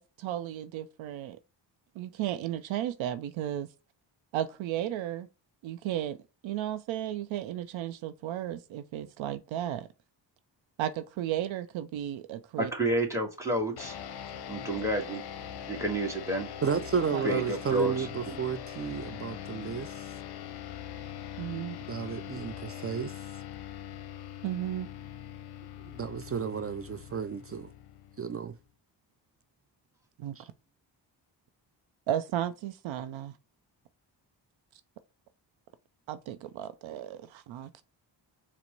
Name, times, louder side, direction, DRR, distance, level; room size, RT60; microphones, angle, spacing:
voice 1, 0.0-1.4 2.0-3.7 4.3-5.3 5.6-6.2 6.4-9.9 10.8-12.7 17.1-17.2 21.4-21.8 24.4-24.9 30.2-30.4 32.1-33.3 36.1-37.8, right 11 dB, 85° right, 0.5 m, -34 dB
voice 2, 12.6-14.0 14.5-15.2 15.7-16.5 17.2-18.4, right 1 dB, 5° right, 1.5 m, -30 dB
sound 1, 13.8-28.6, left 10 dB, 60° left, 0.6 m, -42 dB
voice 3, 16.6-19.9 21.9-23.1 25.8-27.7 28.2-28.6 30.4-30.5, right 6 dB, 35° right, 0.4 m, -32 dB
4.4 x 2.1 x 3.8 m
cardioid pair, 65°, 45 cm